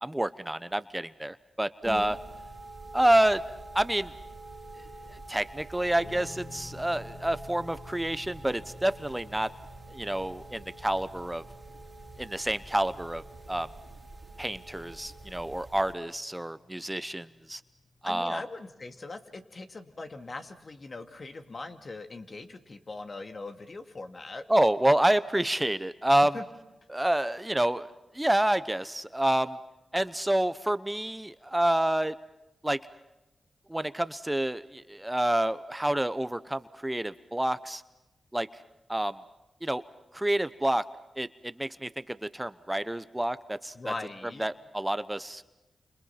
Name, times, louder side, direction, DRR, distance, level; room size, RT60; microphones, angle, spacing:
voice 1, 0.0-2.2 2.9-3.4 3.7-4.1 5.1-9.5 9.9-11.4 12.2-13.2 13.5-13.7 14.4-17.6 18.0-18.4 24.5-26.4 26.9-27.9 28.1-29.6 29.9-32.1 32.6-32.8 33.7-37.8 38.3-38.5 38.9-39.2 39.6-39.8 40.1-40.9 41.2-43.9 44.4-45.5, right 1 dB, 15° right, 14 dB, 0.9 m, -28 dB
sound 1, 1.8-16.0, right 2 dB, 30° right, 2.9 m, -46 dB
sound 2, 6.0-18.5, left 2 dB, 90° left, 5.1 m, -52 dB
voice 2, 18.0-24.4 26.3-26.4 43.7-44.5, left 3 dB, 50° left, 6 dB, 2.3 m, -41 dB
29.5 x 27.0 x 5.9 m, 0.97 s
cardioid pair, 50°, 0 cm